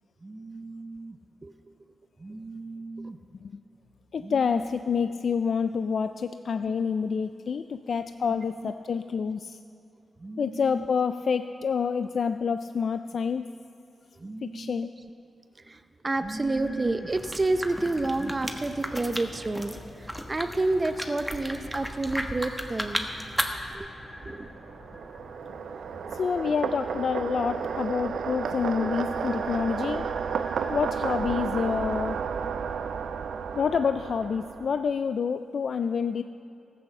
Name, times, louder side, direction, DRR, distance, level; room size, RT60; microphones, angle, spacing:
voice 1, 0.2-1.5 2.2-3.2 4.2-4.7 6.6-6.9 8.6-8.7 10.2-10.9 14.2-15.1 15.6-23.1 23.7-23.9 24.2-24.5, right 2 dB, 30° right, 9 dB, 0.6 m, -31 dB
voice 2, 4.1-9.6 10.4-13.5 14.4-14.9 26.1-30.1 30.7-32.3 33.6-36.2, left 6 dB, 65° left, 10 dB, 0.3 m, -28 dB
sound 1, 16.2-34.2, left 1 dB, 25° left, 3.6 m, -47 dB
sound 2, 17.1-23.8, equal, ahead, 1.2 m, -35 dB
sound 3, 24.2-34.9, right 6 dB, 80° right, 0.4 m, -32 dB
14.5 x 8.3 x 6.6 m, 2.7 s
cardioid pair, 70°, 0 cm